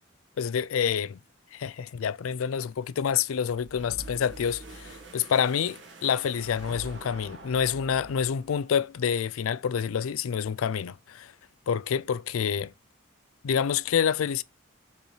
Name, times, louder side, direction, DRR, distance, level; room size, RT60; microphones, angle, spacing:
voice 1, 0.4-1.2 1.5-11.3 11.7-12.7 13.4-14.4, left 7 dB, 85° left, 0.4 m, -27 dB
sound 1, 3.6-8.7, right 2 dB, 60° right, 1.5 m, -45 dB
5.3 x 4.5 x 4.9 m
head